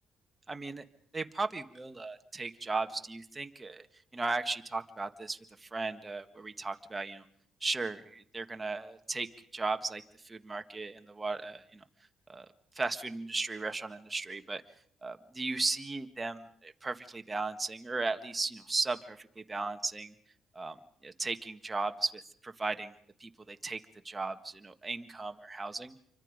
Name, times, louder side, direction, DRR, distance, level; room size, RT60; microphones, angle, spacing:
voice 1, 0.5-0.8 1.1-3.9 4.1-7.2 7.6-11.8 12.3-12.5 12.7-14.6 15.0-20.1 20.5-20.8 21.0-22.9 23.2-23.8 24.0-25.9, right 3 dB, 20° right, 7 dB, 1.7 m, -36 dB
27.5 x 24.5 x 5.2 m, 0.63 s
cardioid pair, 90°, 0 cm